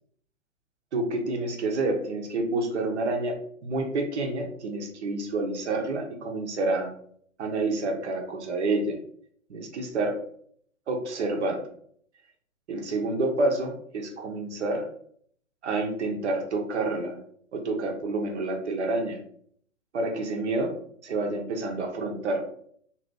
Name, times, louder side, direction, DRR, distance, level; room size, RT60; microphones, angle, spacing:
voice 1, 0.9-3.4 3.6-6.9 7.4-9.0 9.5-10.2 10.9-11.6 12.7-14.9 15.6-17.2 17.5-19.2 19.9-20.7 21.0-22.4, right 2 dB, 55° right, 2 dB, 0.8 m, -28 dB
2.7 x 2.5 x 3.4 m, 0.62 s
figure-of-eight pair, 115°, 40 cm